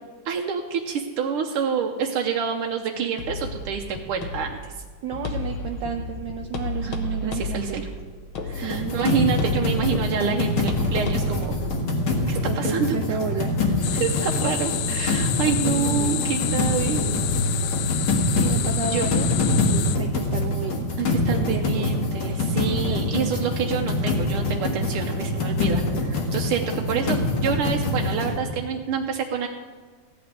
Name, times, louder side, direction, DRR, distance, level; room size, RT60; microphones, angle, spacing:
voice 1, 0.3-4.7 6.8-7.9 8.5-11.6 12.3-13.2 13.9-17.0 18.9-19.1 21.0-29.5, right 7 dB, 85° right, 2 dB, 1.7 m, -27 dB
sound 1, 3.2-11.5, left 2 dB, 70° left, 1.9 m, -33 dB
voice 2, 5.0-7.8 8.6-9.1 12.2-14.0 15.5-16.2 16.8-17.2 18.4-20.9 21.3-22.0 22.7-23.3 26.9-27.1, right 6 dB, 70° right, 4 dB, 1.2 m, -32 dB
sound 2, 8.5-28.4, left 2 dB, 55° left, 2.1 m, -25 dB
sound 3, 13.8-20.0, left 12 dB, 90° left, 0.9 m, -29 dB
15.0 x 5.1 x 9.5 m, 1.5 s
omnidirectional pair, 2.4 m